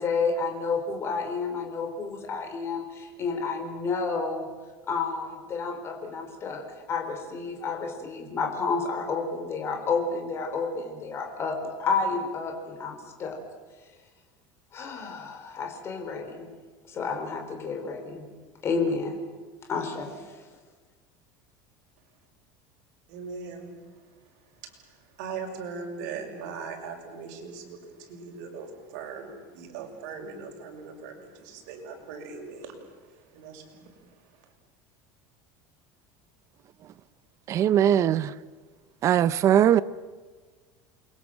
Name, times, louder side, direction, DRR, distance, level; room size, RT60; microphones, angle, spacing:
voice 1, 0.0-4.5 4.9-13.4 14.7-16.5 16.8-18.3 18.6-19.2 19.7-20.3, left 4 dB, 25° left, 4.0 m, -30 dB
voice 2, 23.1-34.5, right 5 dB, 75° right, 6.1 m, -40 dB
voice 3, 37.5-38.3 39.0-39.8, right 10 dB, 30° right, 0.7 m, -20 dB
28.5 x 22.5 x 7.7 m
cardioid pair, 170°, 9 cm